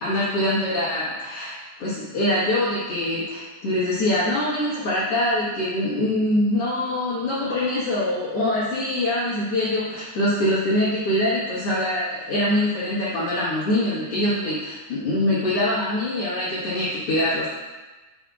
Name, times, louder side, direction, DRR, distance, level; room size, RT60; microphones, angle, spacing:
voice 1, 0.0-17.5, left 1 dB, 65° left, -10 dB, 1.5 m, -24 dB
10.0 x 6.2 x 2.4 m, 1.2 s
omnidirectional pair, 4.9 m